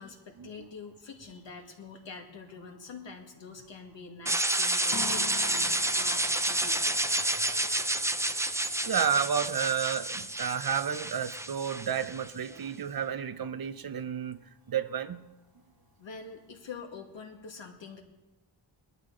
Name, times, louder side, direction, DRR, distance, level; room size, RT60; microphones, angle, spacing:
voice 1, 0.0-6.9 16.0-18.0, left 4 dB, 65° left, 1.9 m, -46 dB
sound 1, 4.3-12.3, right 1 dB, 5° right, 0.4 m, -29 dB
sound 2, 4.9-16.7, left 6 dB, 50° left, 1.2 m, -49 dB
voice 2, 8.8-14.4 14.7-15.2, right 8 dB, 50° right, 0.7 m, -31 dB
21.0 x 12.0 x 3.8 m
wide cardioid pair, 125°, 48 cm